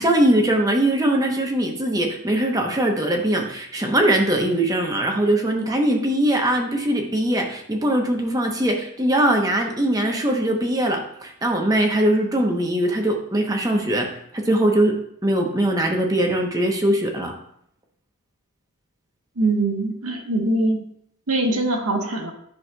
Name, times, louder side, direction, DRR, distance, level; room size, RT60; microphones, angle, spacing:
voice 1, 0.0-14.1 14.3-14.9 15.2-17.3, right 1 dB, 15° right, 2 dB, 0.8 m, -21 dB
voice 2, 19.4-20.8 21.3-22.3, right 2 dB, 75° right, 2 dB, 1.2 m, -22 dB
10.5 x 6.3 x 2.3 m, 0.71 s
head